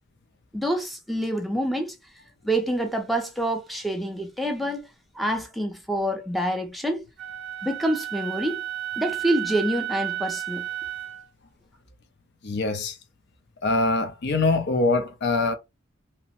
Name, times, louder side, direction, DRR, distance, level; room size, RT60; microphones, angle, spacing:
voice 1, 0.5-1.9 2.4-4.9 5.1-7.1 7.6-8.6 9.0-10.6, right 1 dB, ahead, 0.5 m, -27 dB
Wind instrument woodwind instrument, 7.2-11.3, right 12 dB, 60° right, 0.5 m, -32 dB
voice 2, 12.4-12.9 13.6-15.5, left 3 dB, 55° left, 0.6 m, -23 dB
2.8 x 2.0 x 2.9 m
head